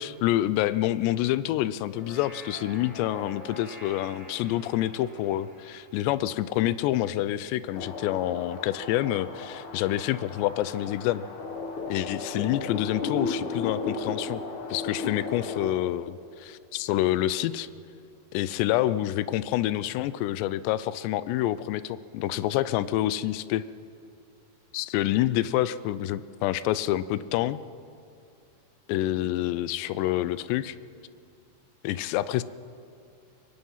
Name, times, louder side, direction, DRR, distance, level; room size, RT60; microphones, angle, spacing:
voice 1, 0.0-11.3 11.9-14.4 14.7-17.7 18.3-23.6 24.7-27.6 28.9-30.8 31.8-32.4, left 14 dB, 85° left, 16 dB, 2.8 m, -27 dB
sound 1, 1.7-7.3, equal, 15° right, 6.9 m, -47 dB
sound 2, 7.8-15.7, left 4 dB, 55° left, 2.7 m, -35 dB
24.5 x 22.5 x 5.7 m, 2.5 s
omnidirectional pair, 4.9 m